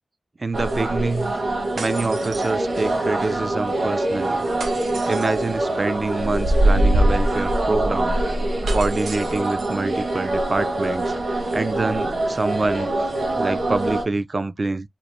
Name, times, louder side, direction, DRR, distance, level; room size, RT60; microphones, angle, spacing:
voice 1, 0.4-1.4 1.7-4.5 5.1-8.2 8.7-11.1 11.5-13.1 13.3-14.9, right 3 dB, 45° right, 0.3 m, -26 dB
sound 1, 0.5-14.0, right 1 dB, 65° right, 1.2 m, -23 dB
sound 2, 1.8-3.1 4.6-5.6 8.7-9.8, right 4 dB, 90° right, 0.7 m, -37 dB
3.8 x 3.3 x 2.3 m
wide cardioid pair, 70°, 0 cm